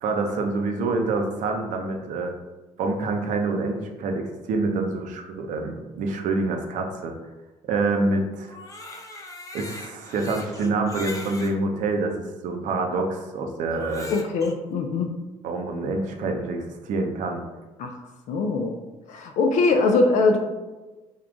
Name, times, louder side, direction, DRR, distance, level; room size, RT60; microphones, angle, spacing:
voice 1, 0.0-2.3 2.8-7.1 7.7-8.6 9.5-12.1 12.4-14.1 15.4-17.4, right 3 dB, 75° right, 3 dB, 0.6 m, -26 dB
Crying sobbing, 8.4-11.6 12.3-12.4 13.7-14.5, left 2 dB, 25° left, 0.6 m, -40 dB
voice 2, 14.1-15.1 17.8-18.0 18.3-18.8 19.1-20.4, left 3 dB, 70° left, 4 dB, 0.4 m, -22 dB
3.6 x 2.3 x 3.7 m, 1.2 s
supercardioid pair, 75°, 13 cm